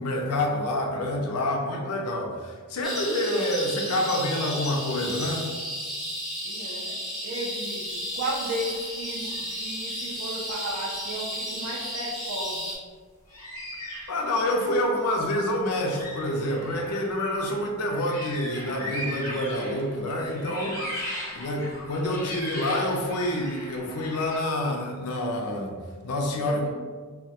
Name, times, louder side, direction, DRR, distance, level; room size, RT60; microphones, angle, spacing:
voice 1, 0.0-5.5 14.1-20.8 21.3-25.7 26.0-26.7, left 1 dB, 85° left, 1 dB, 0.4 m, -27 dB
sound 1, 2.8-12.7, equal, ahead, 0.4 m, -33 dB
voice 2, 6.4-7.0 7.2-12.8 26.3-26.7, right 1 dB, 80° right, -4 dB, 0.4 m, -34 dB
sound 2, 8.5-8.9 9.2-9.4 10.3-10.4 13.3-14.7 15.5-15.6 15.8-20.0 20.3-24.4, equal, 65° left, 0.8 m, -38 dB
2.2 x 2.1 x 2.8 m, 1.5 s
head